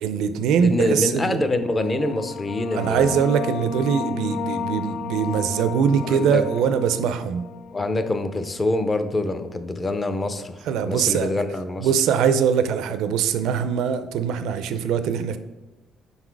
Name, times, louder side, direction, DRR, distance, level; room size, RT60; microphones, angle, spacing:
voice 1, 0.0-1.4 2.7-7.5 10.7-11.3 11.8-15.4, right 7 dB, 80° right, 10 dB, 0.4 m, -22 dB
voice 2, 0.6-3.2 6.0-6.5 7.7-11.9, left 2 dB, 20° left, 9 dB, 0.5 m, -25 dB
sound 1, 1.5-8.7, left 6 dB, 80° left, 0.3 m, -33 dB
5.7 x 4.0 x 4.6 m, 1.1 s
cardioid pair, 115°, 0 cm